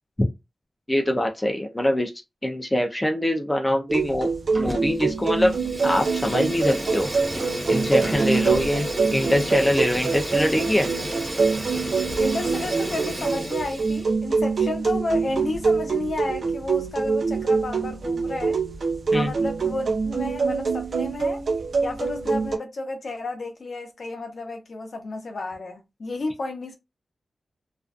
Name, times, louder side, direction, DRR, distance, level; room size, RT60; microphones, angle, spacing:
voice 1, 0.9-2.1 2.4-4.3 4.6-7.1 7.7-10.9 19.1-19.3, left 1 dB, 15° left, 0.4 m, -23 dB
sound 1, 3.9-22.6, right 4 dB, 65° right, 0.5 m, -25 dB
Fire, 4.5-5.1 5.3-14.1, right 1 dB, 15° right, 0.8 m, -32 dB
voice 2, 12.2-18.6 19.1-21.4 21.8-26.8, left 2 dB, 60° left, 0.6 m, -32 dB
2.5 x 2.3 x 2.3 m
wide cardioid pair, 155°, 0 cm